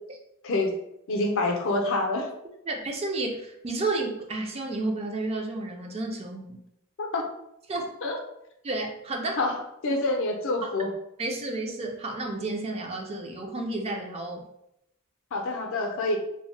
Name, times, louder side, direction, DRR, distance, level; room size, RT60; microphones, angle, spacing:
voice 1, 1.1-2.3 7.0-7.2 8.0-8.2 9.4-9.6 9.8-10.9 15.3-16.2, left 2 dB, 60° left, 2 dB, 0.5 m, -26 dB
voice 2, 2.7-6.6 7.7-7.9 8.6-9.4 9.9-10.0 10.6-10.7 11.2-14.4, right 2 dB, 30° right, 1 dB, 0.4 m, -31 dB
2.7 x 2.1 x 3.1 m, 0.81 s
head